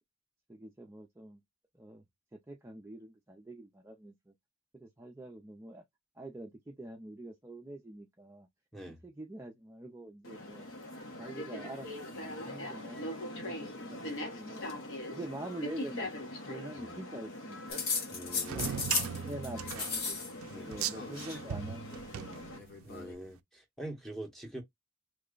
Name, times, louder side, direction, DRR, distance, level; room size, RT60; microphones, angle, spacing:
voice 1, 0.5-1.4 1.7-2.0 2.3-4.3 4.7-5.8 6.2-8.5 8.8-10.6 11.2-14.6 15.1-17.6 18.5-20.2 20.6-22.5, right 1 dB, 15° right, 0.4 m, -46 dB
sound 1, 10.2-22.6, left 1 dB, 75° left, 1.1 m, -42 dB
sound 2, 17.7-19.2 19.4-20.3 20.6-21.4 22.5-23.1, left 5 dB, 50° left, 1.0 m, -35 dB
voice 2, 18.1-18.7 20.5-20.7 22.8-24.6, right 1 dB, ahead, 0.8 m, -44 dB
sound 3, 18.4-23.0, right 9 dB, 85° right, 0.4 m, -38 dB
3.2 x 2.1 x 3.7 m
head